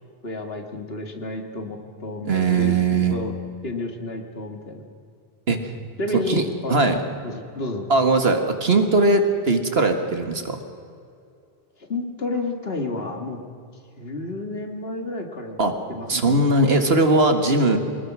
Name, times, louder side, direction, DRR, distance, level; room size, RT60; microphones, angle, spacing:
voice 1, 0.2-3.3 3.6-4.8 6.0-6.7 7.2-7.9 11.9-13.4 14.0-15.6 15.9-16.4, left 2 dB, 75° left, 4 dB, 2.3 m, -31 dB
voice 2, 2.3-3.1 5.5-5.6 6.3-6.4 6.7-7.0 7.9-10.6 15.6-15.7 16.1-17.8, right 2 dB, 75° right, 6 dB, 2.0 m, -19 dB
23.0 x 20.0 x 6.2 m, 2.4 s
omnidirectional pair, 1.0 m